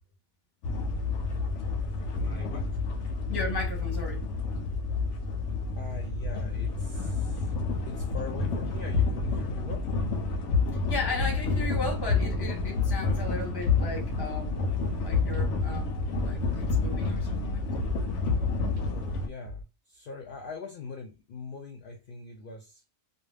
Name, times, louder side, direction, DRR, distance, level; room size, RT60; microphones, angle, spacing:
sound 1, 0.6-19.3, left 4 dB, 85° left, 0.9 m, -29 dB
voice 1, 2.1-2.8 5.8-7.5 7.9-9.9 18.8-22.8, left 3 dB, 60° left, 0.7 m, -41 dB
voice 2, 3.3-4.2 10.7-17.8, left 2 dB, 25° left, 0.8 m, -36 dB
sound 2, 13.6-13.7 14.3-15.7 16.0-17.1 17.7-19.6, left 3 dB, 70° right, 0.8 m, -43 dB
2.3 x 2.2 x 3.3 m
omnidirectional pair, 1.2 m